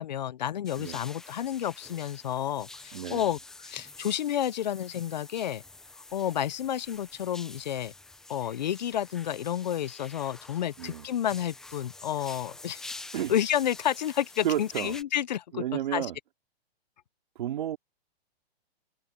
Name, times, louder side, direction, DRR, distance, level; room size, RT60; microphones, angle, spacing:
voice 1, 0.0-3.4 3.6-5.6 6.1-7.9 8.3-12.8 13.3-15.6 15.9-16.1, left 10 dB, 45° left, 0.4 m, -30 dB
sound 1, 0.7-15.0, left 2 dB, ahead, 0.6 m, -47 dB
voice 2, 2.9-3.3 10.8-11.1 13.1-13.4 14.4-15.0 15.5-16.2 17.3-17.8, right 11 dB, 50° right, 2.5 m, -32 dB
hypercardioid pair, 175°, 31 cm